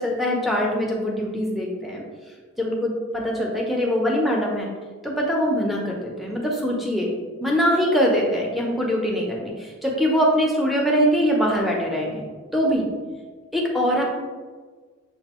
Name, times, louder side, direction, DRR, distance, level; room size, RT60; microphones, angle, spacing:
voice 1, 0.0-2.0 2.6-4.7 5.0-7.1 7.4-12.2 12.5-12.9 13.5-14.0, equal, ahead, -2 dB, 0.6 m, -23 dB
6.8 x 2.5 x 3.0 m, 1.5 s
head